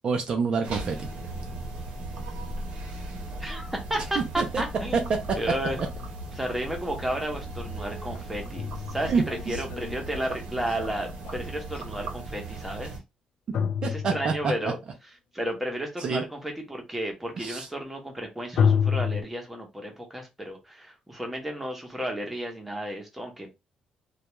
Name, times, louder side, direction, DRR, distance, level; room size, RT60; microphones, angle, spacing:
voice 1, 0.0-1.1 4.2-4.4 4.9-5.0 9.1-9.6 13.8-14.5 16.0-16.2 17.4-17.7, right 5 dB, 45° right, 0.5 m, -27 dB
sound 1, 0.6-13.0, right 2 dB, 85° right, 0.8 m, -37 dB
voice 2, 3.4-5.8 6.3-12.9 13.8-14.8 15.3-23.5, right 1 dB, 5° right, 0.8 m, -33 dB
sound 2, 7.2-7.3 8.2-11.8 13.5-14.7 18.6-19.2, left 7 dB, 70° left, 0.4 m, -28 dB
2.3 x 2.2 x 2.9 m
cardioid pair, 130°, 2 cm